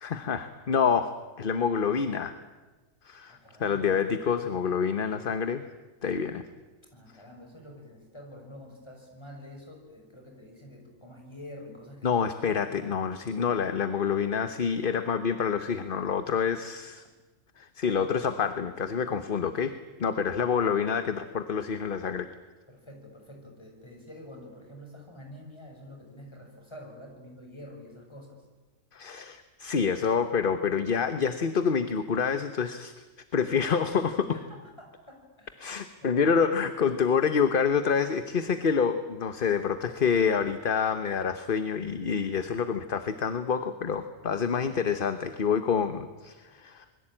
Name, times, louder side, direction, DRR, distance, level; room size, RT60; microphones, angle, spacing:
voice 1, 0.0-2.4 3.0-5.6 6.0-6.4 12.0-17.0 17.6-19.7 20.0-22.3 28.9-33.1 33.3-34.4 35.6-46.8, left 6 dB, 45° left, 10 dB, 1.1 m, -27 dB
voice 2, 3.3-4.0 6.9-12.2 20.0-20.2 22.7-28.4 34.3-35.6 36.0-36.3, left 1 dB, 20° left, 1 dB, 6.3 m, -47 dB
27.0 x 21.5 x 8.9 m, 1.2 s
omnidirectional pair, 1.4 m